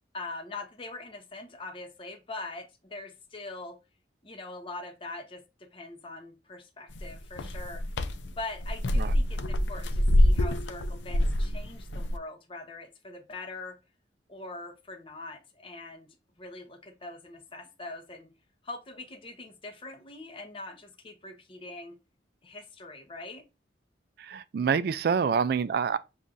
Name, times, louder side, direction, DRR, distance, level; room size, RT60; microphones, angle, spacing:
voice 1, 0.1-3.8 4.2-7.8 8.3-13.8 14.3-16.1 16.4-18.3 18.6-22.0 22.4-23.4, left 2 dB, 30° left, 0.7 m, -42 dB
sound 1, 6.9-12.1, left 1 dB, 85° left, 0.5 m, -26 dB
voice 2, 24.2-26.0, right 6 dB, 60° right, 0.3 m, -27 dB
7.1 x 2.4 x 2.6 m
head